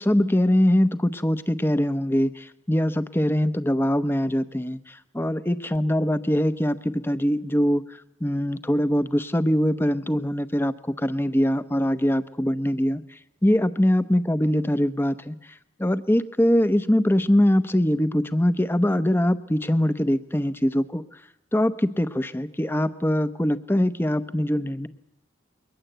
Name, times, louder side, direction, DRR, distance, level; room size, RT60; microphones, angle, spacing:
voice 1, 0.0-7.8 8.2-13.0 13.4-15.4 15.8-21.0 21.5-24.9, equal, 10° left, 13 dB, 0.8 m, -22 dB
22.5 x 19.5 x 8.0 m, 0.86 s
head